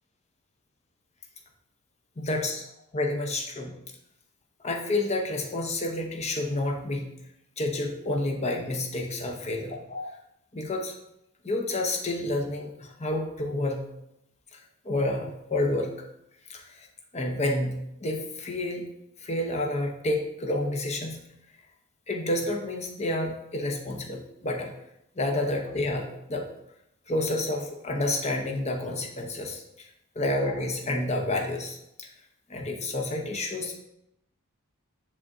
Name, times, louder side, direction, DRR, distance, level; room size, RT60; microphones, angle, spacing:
voice 1, 2.2-2.6 2.9-3.8 4.6-7.1 7.6-10.2 10.5-10.9 11.4-13.9 14.8-15.9 16.5-16.9 17.1-18.8 19.2-21.2 22.1-24.7 25.2-26.5 27.1-29.9 30.1-32.1 32.5-33.8, left 1 dB, 30° left, 2 dB, 0.8 m, -29 dB
9.9 x 3.6 x 2.6 m, 0.81 s
head